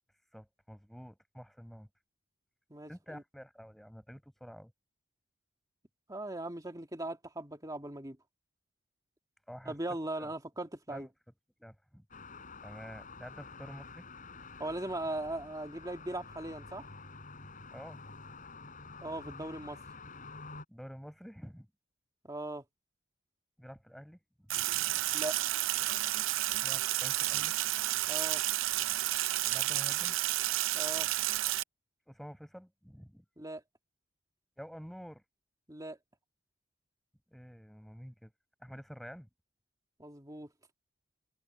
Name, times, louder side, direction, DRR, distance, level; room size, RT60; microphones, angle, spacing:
voice 1, 0.3-1.9 2.9-4.7 9.5-9.8 10.2-10.3 10.9-11.1 11.6-12.1 12.6-14.1 17.7-18.0 20.7-21.7 23.6-25.1 26.6-27.5 29.5-30.2 32.1-33.2 34.6-35.2 37.3-38.3 38.6-39.3, equal, ahead, 6.9 m, -49 dB
voice 2, 2.7-3.2 6.1-8.2 9.7-11.1 14.6-16.8 19.0-19.8 22.2-22.6 25.1-25.4 28.1-28.4 30.7-31.1 33.4-33.6 35.7-36.0 40.0-40.5, right 2 dB, 20° right, 2.4 m, -39 dB
sound 1, 12.1-20.7, left 4 dB, 40° left, 6.0 m, -49 dB
Sink (filling or washing), 24.5-31.6, right 15 dB, 75° right, 0.5 m, -31 dB
open air
head